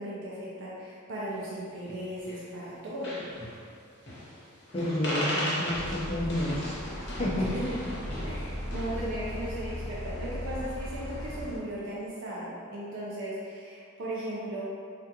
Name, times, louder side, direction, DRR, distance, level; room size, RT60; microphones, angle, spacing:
voice 1, 0.0-3.2 7.5-14.6, right 1 dB, 60° right, -6 dB, 0.5 m, -37 dB
sound 1, 1.9-2.4 2.7-2.8 3.0-3.6 4.1-4.4 4.7-9.1, equal, 55° left, 0.8 m, -36 dB
voice 2, 4.7-6.8 7.2-7.5, left 1 dB, 30° left, -5 dB, 0.5 m, -30 dB
sound 2, 5.7-11.6, left 1 dB, 10° left, 1.3 m, -37 dB
3.5 x 2.4 x 2.8 m, 2.3 s
head